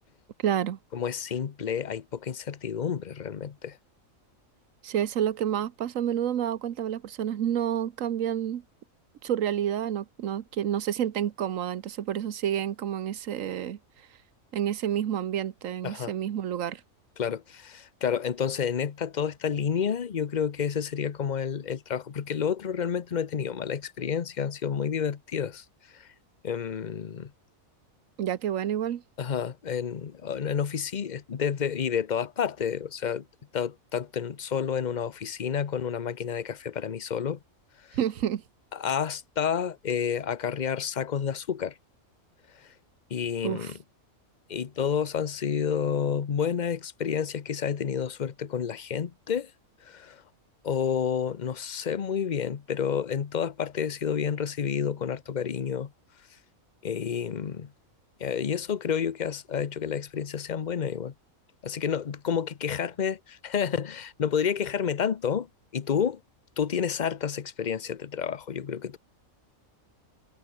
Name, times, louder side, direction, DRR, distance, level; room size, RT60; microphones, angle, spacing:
voice 1, 0.4-0.8 4.8-8.6 9.2-13.8 14.5-16.8 28.2-29.0 37.9-38.4 43.4-43.7, right 10 dB, 75° right, 1.3 m, -29 dB
voice 2, 0.9-3.8 15.8-16.1 17.2-25.6 25.9-26.1 26.4-27.3 29.2-33.3 33.5-37.4 37.9-38.0 38.7-41.7 42.5-42.7 43.1-43.8 44.5-49.5 49.8-50.2 50.6-55.9 56.8-57.7 58.2-61.1 61.6-65.5 65.7-66.2 66.6-69.0, left 7 dB, 40° left, 0.8 m, -30 dB
omnidirectional pair, 1.4 m